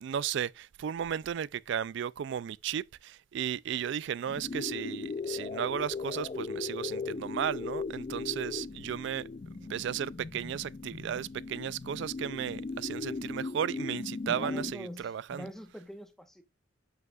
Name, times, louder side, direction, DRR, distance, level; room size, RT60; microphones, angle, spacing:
voice 1, 0.0-9.3 9.6-15.5, right 9 dB, 60° right, 0.3 m, -35 dB
sound 1, 4.3-14.7, left 4 dB, 30° left, 0.3 m, -38 dB
voice 2, 14.3-16.4, equal, ahead, 1.0 m, -44 dB
8.0 x 7.6 x 2.4 m
head